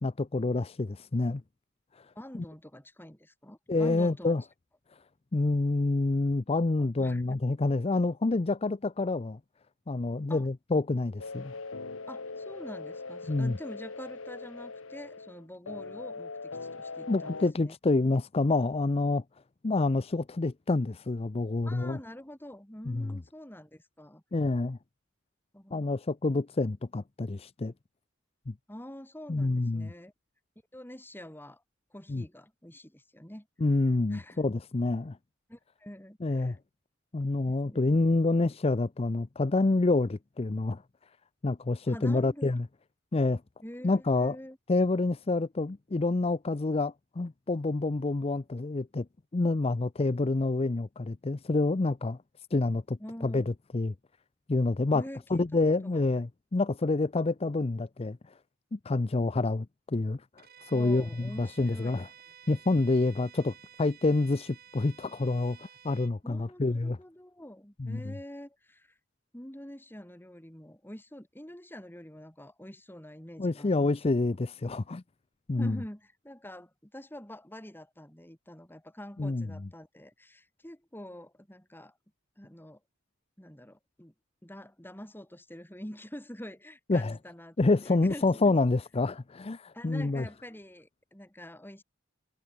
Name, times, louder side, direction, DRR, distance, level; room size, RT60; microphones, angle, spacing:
voice 1, 0.0-1.4 3.7-4.4 5.3-9.4 9.9-11.5 13.3-13.6 17.1-19.2 19.6-22.0 22.9-23.1 24.3-24.8 25.7-27.7 28.5-28.6 29.3-29.9 32.1-32.2 33.6-35.2 36.2-36.6 37.1-40.8 41.4-42.7 43.1-43.4 43.8-44.4 44.7-49.1 49.3-52.2 52.5-53.0 53.2-53.9 54.5-55.0 55.3-58.2 58.7-60.2 60.6-62.1 62.5-65.6 65.8-67.0 67.8-68.1 73.4-75.0 75.5-75.8 79.2-79.5 86.9-87.2 87.6-90.3, left 3 dB, 30° left, 0.5 m, -27 dB
voice 2, 2.1-4.3 6.8-7.4 10.3-10.5 12.1-17.7 21.7-24.2 25.5-25.8 28.7-30.1 30.7-31.6 31.9-33.5 34.1-34.4 35.5-36.6 37.5-37.8 41.8-42.6 43.6-44.6 53.0-53.4 54.9-55.4 55.8-56.2 60.7-62.1 66.2-68.9 69.3-74.0 75.5-81.9 82.4-82.8 83.4-84.1 84.4-87.6 87.8-88.5 89.7-91.8, left 1 dB, 10° left, 3.3 m, -46 dB
sound 1, 11.2-17.5, left 3 dB, 80° left, 1.5 m, -41 dB
Bowed string instrument, 60.4-66.2, right 8 dB, 50° right, 3.9 m, -54 dB
head